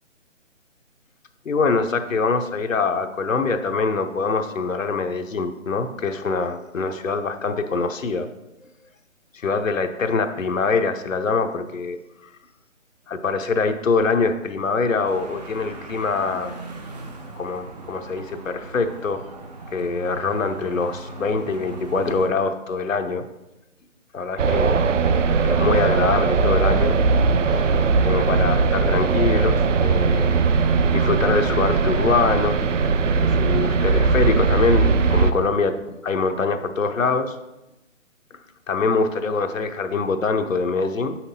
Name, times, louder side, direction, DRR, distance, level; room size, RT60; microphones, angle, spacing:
voice 1, 1.4-8.3 9.4-12.0 13.1-16.5 17.3-19.2 19.7-23.2 24.1-24.7 25.4-27.0 27.5-27.7 28.0-30.4 30.9-32.6 33.2-35.8 36.0-37.3 38.7-41.2, left 4 dB, 75° left, 7 dB, 0.8 m, -24 dB
sound 1, 15.0-22.3, right 3 dB, 30° right, 0.7 m, -38 dB
sound 2, 24.4-35.3, right 4 dB, 70° right, 0.6 m, -19 dB
7.9 x 5.8 x 2.8 m, 0.95 s
figure-of-eight pair, 150°, 39 cm